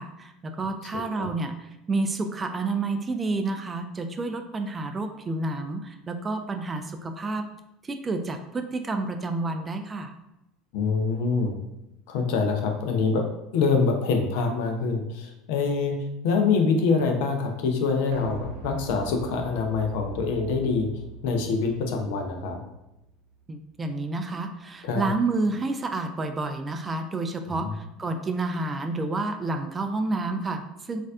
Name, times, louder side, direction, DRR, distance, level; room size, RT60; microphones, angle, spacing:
voice 1, 0.0-7.4 7.8-10.1 23.5-31.0, right 3 dB, 25° right, 6 dB, 0.3 m, -29 dB
voice 2, 0.9-1.3 10.7-11.6 12.1-13.2 13.5-15.9 16.2-20.9 21.2-22.6 24.8-25.1 27.5-27.7, left 4 dB, 65° left, 4 dB, 0.5 m, -25 dB
sound 1, 18.1-23.8 24.1-24.2, right 4 dB, 70° right, 0.6 m, -42 dB
4.0 x 2.4 x 2.3 m, 0.91 s
figure-of-eight pair, 70°, 0 cm